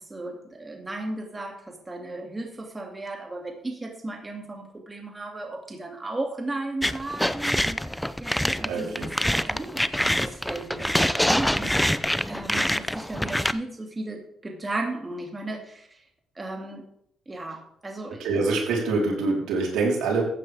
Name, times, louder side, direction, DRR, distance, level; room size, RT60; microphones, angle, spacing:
voice 1, 0.0-16.0 16.3-16.8 17.3-18.2, right 2 dB, 20° right, 1 dB, 2.4 m, -35 dB
sound 1, 6.8-13.5, left 1 dB, 5° left, 0.5 m, -25 dB
voice 2, 8.6-9.1 18.2-20.2, right 3 dB, 85° right, -1 dB, 3.9 m, -25 dB
15.0 x 9.2 x 3.5 m, 0.71 s
cardioid pair, 90°, 0 cm